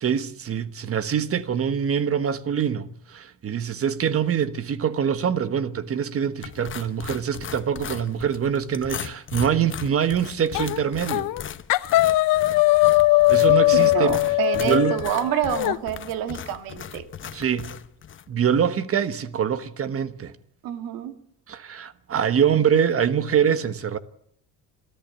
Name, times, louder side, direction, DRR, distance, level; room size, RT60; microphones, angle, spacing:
voice 1, 0.0-11.3 13.3-14.2 14.6-15.0 17.3-17.7 18.3-20.3 21.5-24.0, right 8 dB, 40° right, 1.3 m, -24 dB
sound 1, 6.4-18.3, left 9 dB, 35° left, 1.0 m, -38 dB
sound 2, 10.5-10.8 11.1-11.4 11.7-15.8, left 19 dB, 70° left, 0.9 m, -20 dB
voice 2, 13.7-17.0 20.6-21.2, right 10 dB, 80° right, 2.0 m, -28 dB
27.0 x 14.0 x 8.3 m
cardioid pair, 105°, 34 cm